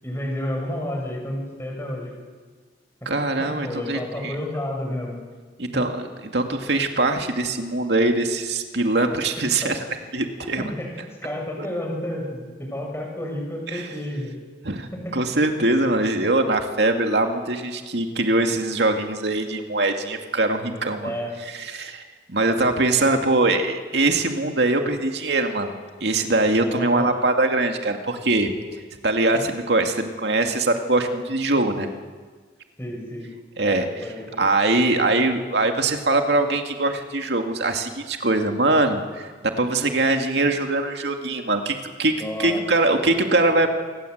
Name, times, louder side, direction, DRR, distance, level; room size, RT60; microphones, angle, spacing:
voice 1, 0.0-2.1 3.0-3.1 3.4-5.1 5.7-5.8 9.6-9.7 10.6-14.3 14.9-15.2 21.0-21.4 26.7-27.2 29.3-29.4 32.8-33.3 33.6-34.4 42.1-42.6, left 1 dB, 15° left, 0 dB, 6.6 m, -31 dB
voice 2, 3.1-4.3 5.6-9.8 10.1-10.6 11.6-11.7 13.7-13.9 14.6-21.1 21.6-25.7 26.0-28.5 29.0-31.9 33.6-33.9 34.4-42.1 42.4-43.7, right 2 dB, 70° right, 4 dB, 2.4 m, -22 dB
27.0 x 19.5 x 8.1 m, 1.5 s
head